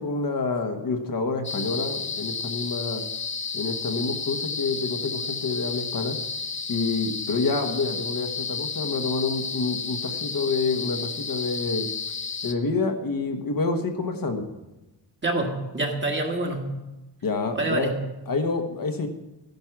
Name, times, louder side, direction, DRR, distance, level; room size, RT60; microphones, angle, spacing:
voice 1, 0.0-3.0 3.5-6.2 6.7-11.9 12.4-14.4 17.2-17.9 18.3-19.1, left 3 dB, 50° left, 4 dB, 1.3 m, -27 dB
Cicadas in Melbourne, 1.4-12.5, left 5 dB, 25° left, 0.7 m, -32 dB
voice 2, 15.2-16.7 17.5-18.1, right 2 dB, 25° right, 2 dB, 1.8 m, -27 dB
14.5 x 10.5 x 6.0 m, 1.0 s
wide cardioid pair, 175°, 44 cm